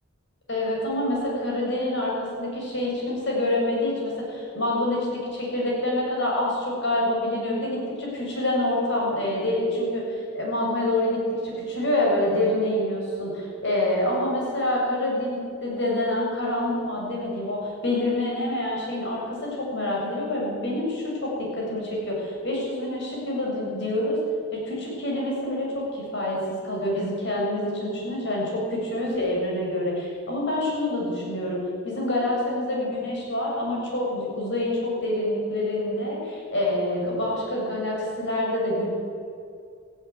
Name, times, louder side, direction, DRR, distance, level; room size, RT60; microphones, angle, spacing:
voice 1, 0.5-24.2 24.5-31.6 31.8-38.9, left 1 dB, 60° left, -2 dB, 7.4 m, -26 dB
18.0 x 15.0 x 9.7 m, 2.4 s
head